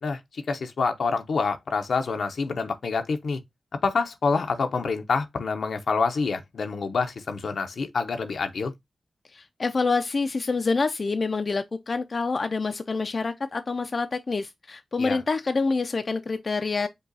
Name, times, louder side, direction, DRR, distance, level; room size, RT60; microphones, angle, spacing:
voice 1, 0.0-3.4 3.8-8.7 15.0-15.2, left 4 dB, 90° left, 0.7 m, -27 dB
voice 2, 9.3-16.9, left 4 dB, 55° left, 0.4 m, -27 dB
5.4 x 2.3 x 3.9 m
wide cardioid pair, 75°, 0 cm